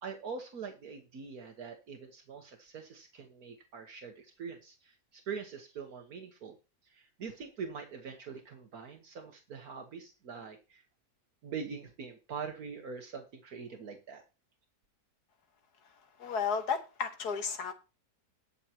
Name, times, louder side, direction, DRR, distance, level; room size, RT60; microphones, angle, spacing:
voice 1, 0.0-6.6 6.8-10.8 11.4-14.2, right 5 dB, 70° right, 1.6 m, -43 dB
voice 2, 16.2-17.7, left 6 dB, 80° left, 1.9 m, -33 dB
20.5 x 6.8 x 2.9 m
omnidirectional pair, 1.7 m